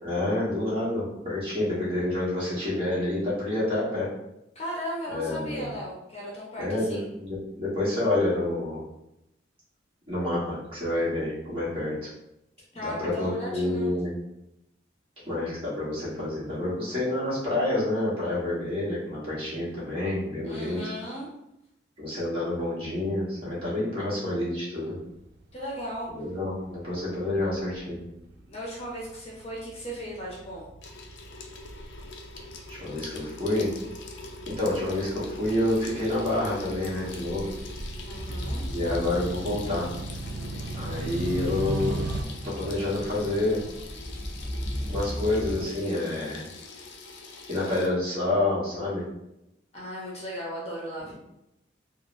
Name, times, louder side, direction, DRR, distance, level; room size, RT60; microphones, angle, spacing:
voice 1, 0.0-4.1 5.1-5.7 6.6-8.8 10.1-12.1 12.8-14.1 15.2-20.8 22.0-24.9 26.1-28.0 32.7-33.7 34.5-37.5 38.7-39.9 40.7-42.0 42.6-43.6 44.9-46.4 47.5-49.0, left 1 dB, 30° right, -8 dB, 1.3 m, -28 dB
voice 2, 4.5-7.1 12.7-13.9 20.4-21.3 25.5-26.1 28.5-30.7 38.0-38.7 49.7-51.1, equal, 35° left, -5 dB, 0.7 m, -36 dB
sound 1, 25.3-42.2, right 2 dB, 60° right, 0.3 m, -39 dB
Water tap faucet / Sink (filling or washing), 30.8-47.9, left 4 dB, 65° left, 0.4 m, -43 dB
sound 2, 38.2-45.6, equal, 10° right, 0.6 m, -36 dB
3.6 x 2.1 x 2.5 m, 0.86 s
head